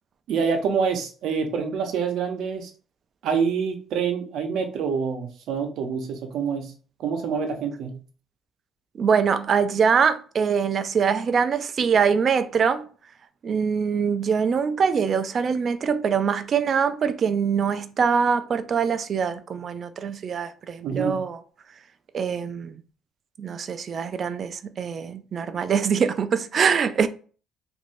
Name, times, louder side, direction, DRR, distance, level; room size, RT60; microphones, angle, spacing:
voice 1, 0.3-2.7 3.2-6.7 7.0-8.0 20.8-21.3, right 6 dB, 70° right, 0.7 m, -26 dB
voice 2, 9.0-12.9 13.4-21.4 22.1-22.8 23.4-27.1, right 6 dB, 40° right, 0.3 m, -23 dB
3.1 x 2.5 x 2.6 m
cardioid pair, 135°, 0 cm